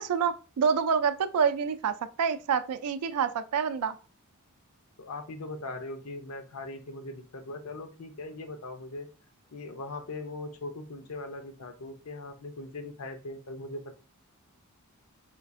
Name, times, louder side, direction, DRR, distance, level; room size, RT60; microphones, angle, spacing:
voice 1, 0.0-3.9, right 6 dB, 85° right, 11 dB, 0.4 m, -27 dB
voice 2, 5.0-9.1 9.5-13.9, left 2 dB, 75° left, 6 dB, 0.6 m, -40 dB
4.4 x 2.4 x 2.5 m, 0.34 s
head